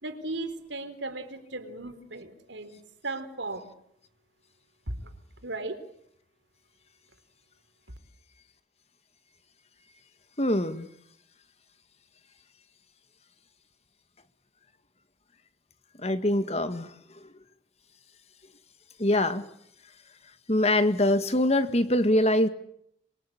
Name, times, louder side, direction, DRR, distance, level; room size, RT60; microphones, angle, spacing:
voice 1, 0.0-3.7 4.9-5.1 5.4-5.8, right 2 dB, 90° right, 9 dB, 3.8 m, -36 dB
voice 2, 10.4-10.9 15.9-17.3 19.0-19.5 20.2-22.5, left 1 dB, 35° left, 10 dB, 1.9 m, -24 dB
26.5 x 22.5 x 8.6 m, 0.71 s
head